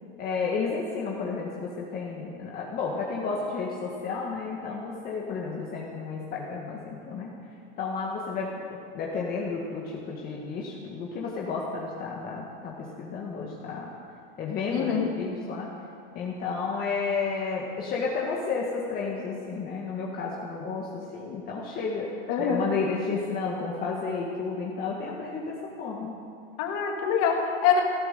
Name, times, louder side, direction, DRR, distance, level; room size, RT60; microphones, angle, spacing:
voice 1, 0.2-7.4 7.8-13.9 14.4-15.7 16.1-26.1, left 4 dB, 30° left, -3 dB, 1.8 m, -32 dB
voice 2, 14.7-15.1 22.3-22.7 26.6-27.8, left 7 dB, 55° left, 1 dB, 2.6 m, -24 dB
16.5 x 11.0 x 6.8 m, 2.4 s
supercardioid pair, 145°, 29 cm